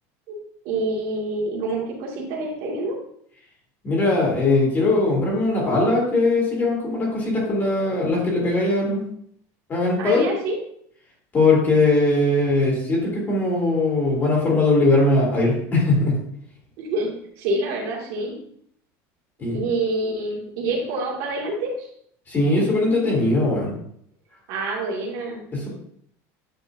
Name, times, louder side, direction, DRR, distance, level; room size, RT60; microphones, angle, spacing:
voice 1, 0.6-3.0 10.0-10.5 16.8-17.1 17.4-18.3 19.5-21.9 24.5-25.4, right 2 dB, 60° right, -2 dB, 2.4 m, -27 dB
voice 2, 3.8-9.1 9.7-10.3 11.3-16.2 19.4-19.6 22.3-23.7 25.5-25.7, left 2 dB, 25° left, -4 dB, 3.1 m, -20 dB
9.0 x 6.3 x 2.8 m, 0.67 s
cardioid pair, 155°, 8 cm